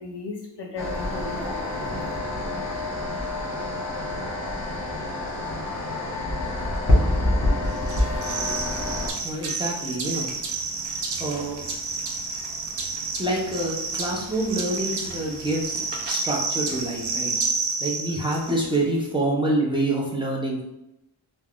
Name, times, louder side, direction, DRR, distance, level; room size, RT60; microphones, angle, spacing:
voice 1, 0.0-2.2, left 3 dB, 60° left, 2 dB, 0.5 m, -36 dB
sound 1, 0.8-9.1, left 1 dB, 35° left, 1.0 m, -26 dB
sound 2, 7.9-18.8, right 4 dB, 60° right, 0.6 m, -30 dB
voice 2, 9.2-10.3 11.2-11.6 13.2-17.3 17.8-20.6, right 1 dB, 10° right, -3 dB, 0.5 m, -26 dB
3.3 x 2.1 x 2.3 m, 0.87 s
wide cardioid pair, 75°, 48 cm